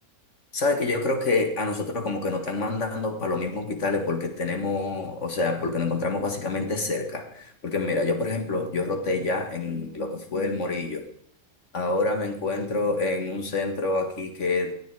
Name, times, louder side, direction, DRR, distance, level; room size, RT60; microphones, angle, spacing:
voice 1, 0.5-11.0 11.7-14.7, left 3 dB, 55° left, 5 dB, 2.0 m, -27 dB
17.0 x 9.3 x 4.8 m, 0.65 s
omnidirectional pair, 1.5 m